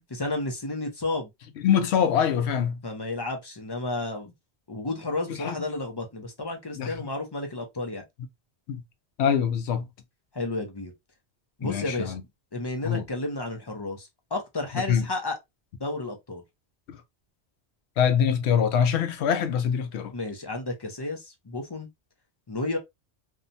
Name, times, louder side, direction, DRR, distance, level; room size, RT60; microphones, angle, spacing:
voice 1, 0.1-1.3 2.8-4.3 4.7-8.0 10.3-10.9 11.6-12.2 12.5-15.4 15.8-16.4 20.1-21.9 22.5-22.8, left 2 dB, 35° left, 0.4 m, -32 dB
voice 2, 1.6-2.8 5.4-5.6 6.8-6.9 8.7-8.8 9.2-9.8 11.6-12.2 12.8-13.0 14.9-15.1 18.0-20.1, left 8 dB, 80° left, 0.9 m, -24 dB
2.7 x 2.2 x 2.5 m
omnidirectional pair, 1.1 m